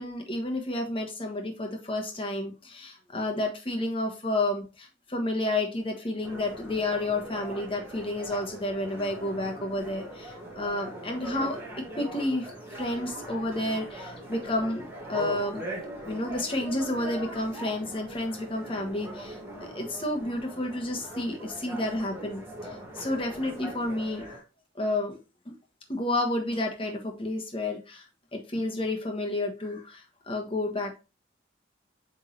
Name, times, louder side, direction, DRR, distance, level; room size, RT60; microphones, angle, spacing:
voice 1, 0.0-11.6 11.9-15.6 16.1-24.4 24.7-25.2 25.4-25.6 25.9-28.0 28.3-31.0, left 1 dB, 30° left, 2 dB, 1.3 m, -31 dB
sound 1, 6.2-24.4, right 1 dB, 10° right, 1.8 m, -40 dB
7.9 x 3.7 x 3.2 m, 0.30 s
head